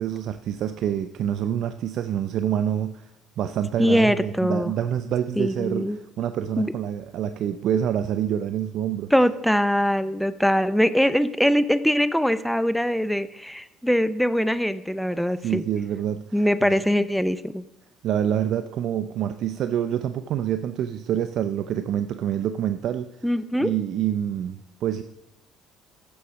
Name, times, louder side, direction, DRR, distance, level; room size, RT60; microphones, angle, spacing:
voice 1, 0.0-3.1 3.4-9.1 15.4-16.7 18.0-23.1 23.6-25.0, right 10 dB, 65° right, 10 dB, 0.5 m, -27 dB
voice 2, 3.8-4.7 5.4-6.0 6.6-6.7 9.1-15.6 16.3-17.6 23.2-23.7, equal, ahead, 13 dB, 0.6 m, -22 dB
11.0 x 7.0 x 6.3 m, 0.89 s
supercardioid pair, 90°, 0 cm